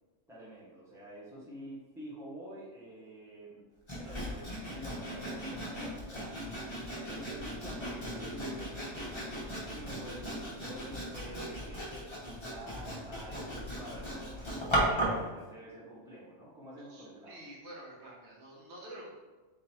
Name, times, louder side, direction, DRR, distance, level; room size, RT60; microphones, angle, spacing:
voice 1, 0.3-3.6 4.0-6.4 7.1-8.7 9.3-17.4, right 1 dB, 5° right, -7 dB, 1.0 m, -48 dB
Sawing, 3.9-15.3, right 1 dB, 25° left, 0.9 m, -36 dB
voice 2, 16.9-19.1, right 1 dB, 65° right, -3 dB, 1.1 m, -48 dB
3.8 x 2.8 x 4.3 m, 1.2 s
omnidirectional pair, 1.3 m